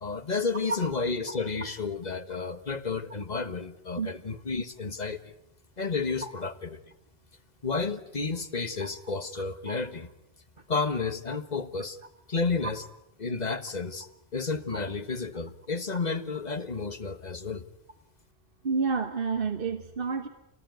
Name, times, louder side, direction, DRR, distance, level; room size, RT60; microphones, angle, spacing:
voice 1, 0.0-5.2 5.8-6.8 7.6-10.1 10.7-12.0 12.3-12.8 13.2-17.6, left 4 dB, 40° left, 9 dB, 1.5 m, -31 dB
voice 2, 18.6-20.3, right 5 dB, 60° right, 8 dB, 1.4 m, -30 dB
27.5 x 19.0 x 9.4 m, 0.86 s
omnidirectional pair, 1.1 m